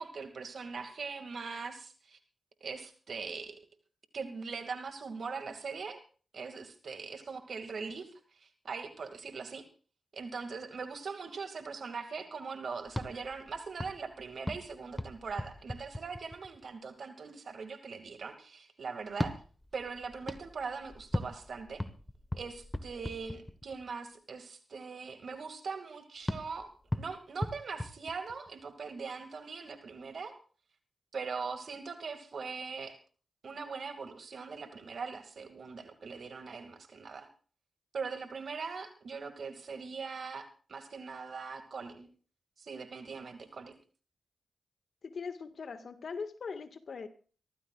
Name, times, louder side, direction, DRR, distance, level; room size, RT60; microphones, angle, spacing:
voice 1, 0.0-2.2 2.6-3.6 4.1-6.0 6.3-9.6 10.1-19.3 19.7-21.8 22.3-26.7 26.9-30.3 31.1-33.0 33.4-37.3 37.9-42.1 42.6-43.7, right 5 dB, 65° right, 6 dB, 2.2 m, -41 dB
sound 1, 12.9-16.7 19.1-23.9 26.3-28.7, left 1 dB, 15° left, 1.4 m, -39 dB
voice 2, 45.0-47.1, left 5 dB, 70° left, 8 dB, 1.7 m, -41 dB
25.0 x 14.5 x 2.5 m, 0.40 s
cardioid pair, 45°, 0 cm